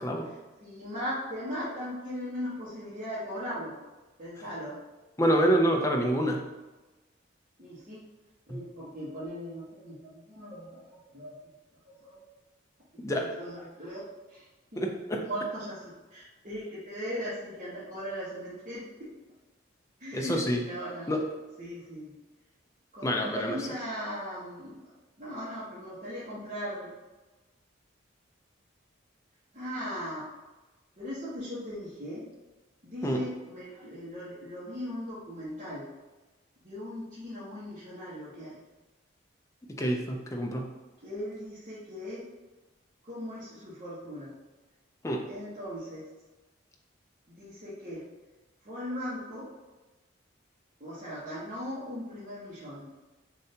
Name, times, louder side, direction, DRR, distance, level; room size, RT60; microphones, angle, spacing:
voice 1, 0.2-3.8 4.2-4.8 7.6-8.0 8.5-11.3 11.8-12.2 13.2-14.4 14.7-19.1 20.0-21.1 21.6-22.2 22.9-24.8 25.2-26.9 29.5-30.3 31.0-32.3 32.8-35.9 36.6-38.6 41.0-42.2 43.0-44.3 45.3-46.1 47.3-48.0 48.6-49.5 50.8-52.9, equal, 40° right, -12 dB, 1.2 m, -38 dB
voice 2, 5.2-6.4 8.5-8.6 13.0-13.3 14.8-15.3 20.1-20.6 21.1-21.2 23.0-23.6 33.0-33.2 39.8-40.7 45.0-45.2, equal, 15° left, 1 dB, 0.5 m, -27 dB
6.7 x 2.8 x 2.8 m, 1.1 s
head